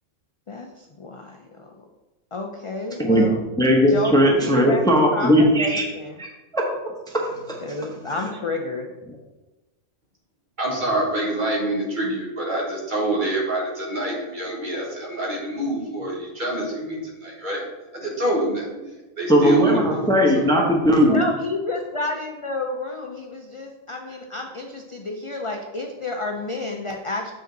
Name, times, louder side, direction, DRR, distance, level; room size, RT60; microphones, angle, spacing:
voice 1, 0.5-1.8 2.3-3.4 3.9-4.8 5.1-6.2 7.6-8.9 21.1-27.3, left 3 dB, 45° left, 2 dB, 0.4 m, -30 dB
voice 2, 3.6-5.9 6.2-6.7 7.1-7.9 9.1-9.2 19.3-21.2, equal, 5° left, 0 dB, 0.9 m, -18 dB
voice 3, 10.6-17.6 17.9-18.9 19.2-20.1, right 1 dB, 40° right, -2 dB, 1.7 m, -26 dB
7.3 x 5.1 x 4.0 m, 1.1 s
omnidirectional pair, 1.3 m